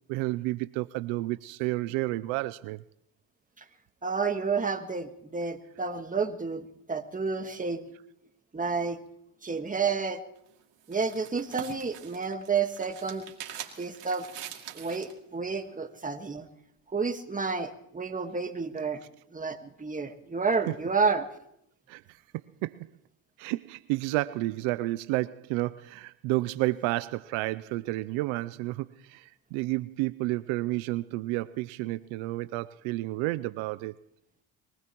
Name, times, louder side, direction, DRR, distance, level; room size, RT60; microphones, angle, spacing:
voice 1, 0.1-2.8 21.9-22.0 22.6-22.9 23.4-33.9, right 19 dB, 75° right, 0.6 m, -31 dB
voice 2, 4.0-7.8 8.5-9.0 9.4-10.2 10.9-13.3 13.8-14.3 14.7-16.5 16.9-19.0 19.3-21.3, right 5 dB, 15° right, 1.6 m, -30 dB
sound 1, 10.4-15.2, right 10 dB, 60° right, 2.5 m, -44 dB
23.0 x 19.0 x 3.0 m
supercardioid pair, 85°, 48 cm